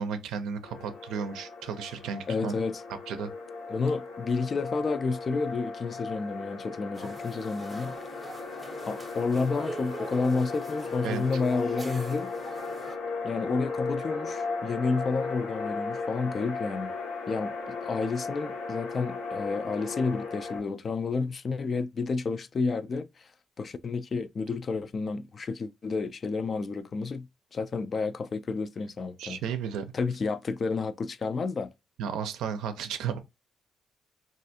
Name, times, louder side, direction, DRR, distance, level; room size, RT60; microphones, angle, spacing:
voice 1, 0.0-2.5 3.1-3.3 11.0-11.3 29.2-29.9 32.0-33.2, right 7 dB, 90° right, 0.5 m, -33 dB
sound 1, 0.6-20.6, left 4 dB, 80° left, 0.9 m, -37 dB
voice 2, 2.3-2.8 3.7-8.0 8.9-12.3 13.2-16.9 17.3-23.3 23.6-27.3 27.5-29.4 29.9-31.7, left 4 dB, 40° left, 0.3 m, -30 dB
Dutch restaurant ambience, 6.9-13.0, right 2 dB, 20° right, 0.6 m, -43 dB
3.3 x 2.4 x 2.7 m
cardioid pair, 90°, 0 cm